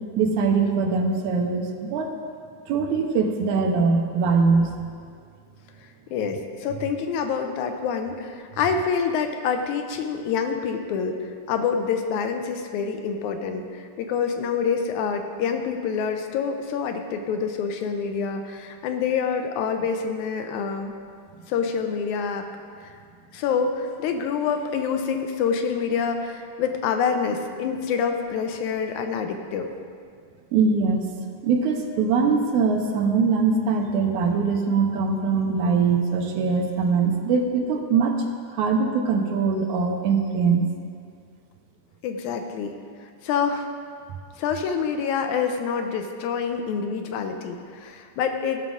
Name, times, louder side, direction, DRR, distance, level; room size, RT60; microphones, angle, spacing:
voice 1, 0.2-2.2 2.7-4.7 30.5-31.0 31.4-38.2 38.5-40.7, right 5 dB, 80° right, 3 dB, 2.2 m, -22 dB
voice 2, 6.1-20.9 21.5-22.5 22.8-22.9 23.3-29.7 42.0-42.7 43.2-43.7 44.4-48.6, left 6 dB, 85° left, 6 dB, 2.1 m, -26 dB
15.0 x 6.0 x 3.8 m, 2.1 s
omnidirectional pair, 3.5 m